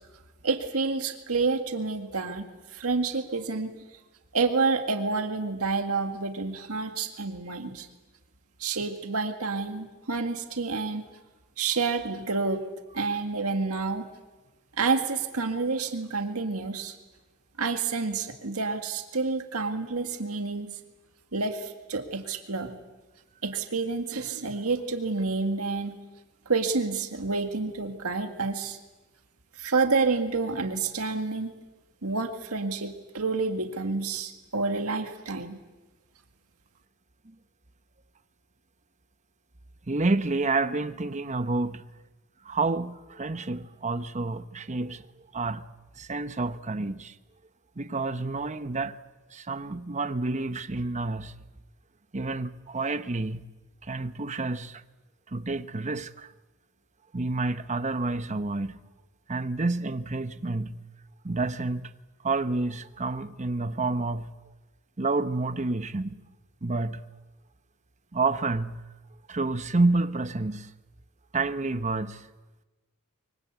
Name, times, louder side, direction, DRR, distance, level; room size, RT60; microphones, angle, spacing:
voice 1, 0.4-3.7 4.3-7.9 8.6-11.0 11.6-12.6 12.9-14.1 14.8-16.9 17.6-20.8 21.3-22.7 23.4-26.0 26.5-28.8 29.5-31.5 32.0-35.6, right 4 dB, 70° right, 2.0 m, -29 dB
voice 2, 39.9-41.9 42.4-47.2 47.8-49.0 49.3-51.3 52.1-53.5 53.8-54.8 55.3-56.3 57.1-58.8 59.3-60.8 61.2-61.9 62.2-64.3 65.0-66.2 66.6-67.0 68.1-68.8 69.3-70.7 71.3-72.3, right 3 dB, 35° right, 1.0 m, -29 dB
24.5 x 24.0 x 8.2 m
head